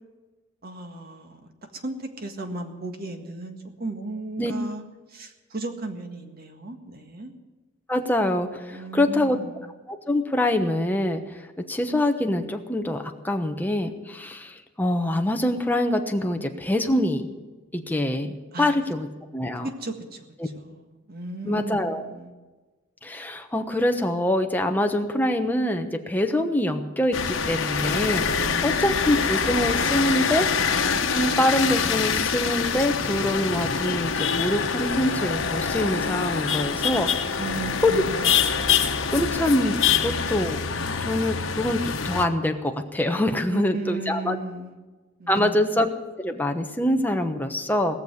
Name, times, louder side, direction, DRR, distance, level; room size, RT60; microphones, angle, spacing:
voice 1, 0.6-1.4 1.7-4.8 5.1-7.3 8.7-9.7 18.5-18.8 19.6-22.3 28.5-28.9 37.4-38.4 43.5-44.8 45.2-45.7, right 2 dB, 50° right, 5 dB, 1.8 m, -35 dB
voice 2, 7.9-9.4 9.9-11.4 11.7-17.3 17.7-19.1 19.3-19.7 20.4-20.5 21.4-22.1 23.0-30.5 31.1-37.4 37.8-37.9 39.1-44.4 45.3-45.9 46.2-48.0, left 1 dB, 10° left, 4 dB, 1.1 m, -25 dB
sound 1, 27.1-42.3, left 6 dB, 90° left, 1.1 m, -25 dB
18.5 x 6.9 x 9.6 m, 1.2 s
head